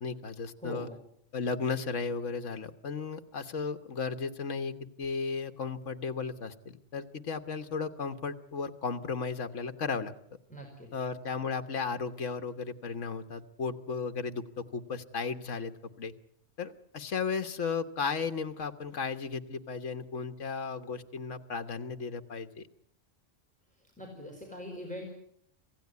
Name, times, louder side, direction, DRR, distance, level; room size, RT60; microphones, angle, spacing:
voice 1, 0.0-0.9 1.3-10.1 10.9-16.1 16.6-22.7, left 5 dB, 75° left, 9 dB, 1.6 m, -35 dB
voice 2, 0.6-1.0 10.5-10.9 24.0-25.1, left 1 dB, 5° left, 0 dB, 4.8 m, -41 dB
26.5 x 16.5 x 9.5 m, 0.71 s
omnidirectional pair, 1.3 m